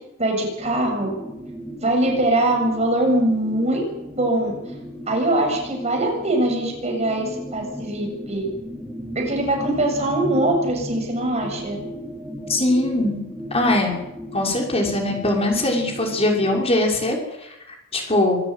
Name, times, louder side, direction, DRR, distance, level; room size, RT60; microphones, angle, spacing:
voice 1, 0.2-1.1 1.8-3.8 4.1-4.5 5.1-8.5 9.2-11.8, right 1 dB, 35° right, 1 dB, 7.2 m, -22 dB
sound 1, 0.6-16.6, equal, 5° right, 4.7 m, -36 dB
voice 2, 12.5-13.2 13.5-13.9 14.3-17.5 17.9-18.4, left 1 dB, 30° left, 0 dB, 6.3 m, -21 dB
26.0 x 14.0 x 9.4 m, 0.89 s
head